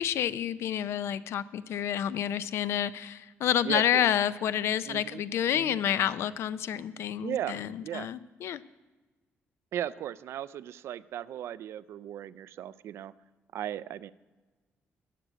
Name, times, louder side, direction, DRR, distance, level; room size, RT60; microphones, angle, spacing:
voice 1, 0.0-8.6, left 10 dB, 70° left, 16 dB, 0.5 m, -29 dB
voice 2, 3.6-4.1 4.9-5.2 5.5-5.8 7.2-8.1 9.7-13.1 13.5-14.1, right 11 dB, 70° right, 17 dB, 0.4 m, -37 dB
12.0 x 6.4 x 8.7 m, 1.3 s
cardioid pair, 170°, 5 cm